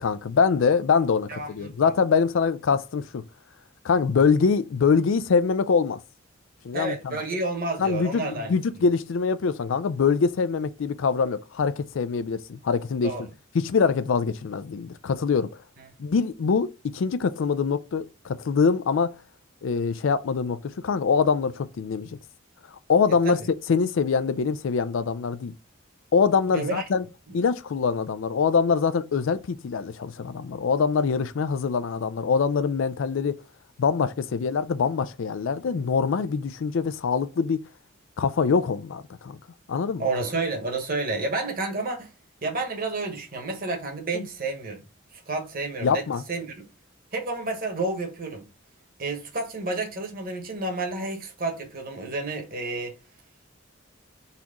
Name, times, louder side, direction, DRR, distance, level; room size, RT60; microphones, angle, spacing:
voice 1, 0.0-3.2 3.8-6.0 6.6-7.2 7.8-13.1 13.5-15.5 16.0-19.2 19.6-22.2 22.9-23.4 23.7-25.5 26.1-27.0 27.3-33.4 33.8-37.6 38.2-39.4 39.7-40.1 44.1-44.3 45.8-46.2, left 5 dB, 70° left, 0.4 m, -24 dB
voice 2, 1.3-1.7 6.7-8.6 13.0-13.2 23.2-23.5 26.5-26.8 27.3-27.4 40.0-42.1 42.4-44.8 45.3-46.5 47.1-48.4 49.0-52.9, right 3 dB, 45° right, 1.2 m, -30 dB
4.1 x 2.9 x 3.7 m
head